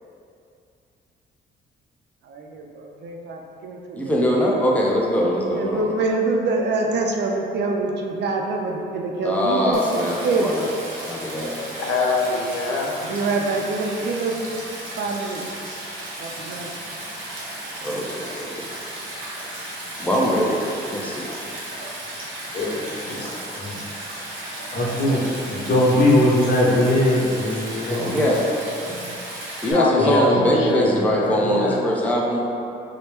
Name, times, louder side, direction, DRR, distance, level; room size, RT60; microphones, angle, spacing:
voice 1, 2.3-4.1 5.5-10.5 13.0-14.4 15.0-15.4 16.2-16.7, right 3 dB, 60° right, 1 dB, 0.5 m, -25 dB
voice 2, 4.0-5.9 9.2-10.7 11.0-11.5 17.8-18.7 20.0-20.6 20.9-21.3 28.0-28.5 29.6-32.4, equal, 5° left, -3 dB, 0.5 m, -22 dB
Stream, 9.7-29.7, right 1 dB, 90° right, 0.9 m, -35 dB
voice 3, 11.8-13.0 29.6-31.8, left 3 dB, 90° left, 0 dB, 0.5 m, -24 dB
voice 4, 24.7-25.2 25.5-28.2 28.8-29.0 30.0-30.1, left 1 dB, 55° left, -7 dB, 1.1 m, -20 dB
4.3 x 2.1 x 3.3 m, 2.6 s
cardioid pair, 90°, 20 cm